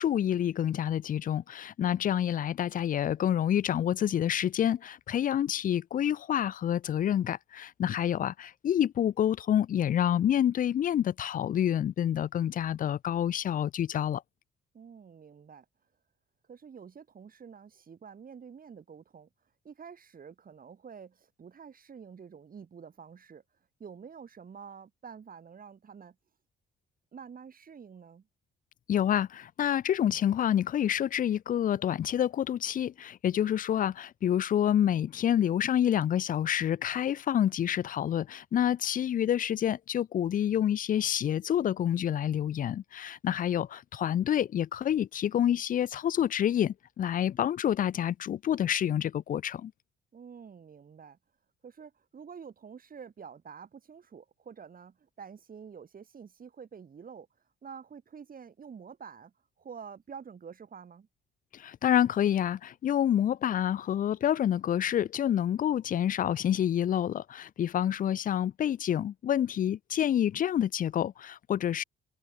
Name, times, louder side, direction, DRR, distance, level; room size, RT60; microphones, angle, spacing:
voice 1, 0.0-14.2 28.9-49.7 61.5-71.8, left 10 dB, 45° left, 0.4 m, -28 dB
voice 2, 14.7-15.7 16.5-26.2 27.1-28.2 50.1-51.2 51.6-61.1, right 6 dB, 45° right, 6.7 m, -48 dB
cardioid pair, 90°, 20 cm